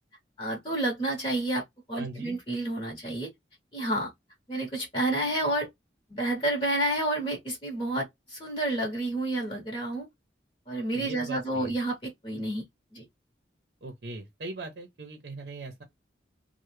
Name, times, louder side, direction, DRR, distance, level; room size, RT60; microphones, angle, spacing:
voice 1, 0.4-1.6 1.9-3.3 3.7-4.1 4.5-5.7 6.1-10.1 10.7-12.6 12.9-13.0, right 1 dB, 30° left, 0.9 m, -30 dB
voice 2, 2.0-2.4 10.9-11.7 13.8-15.8, right 3 dB, 65° right, 0.6 m, -40 dB
3.2 x 2.1 x 3.1 m
head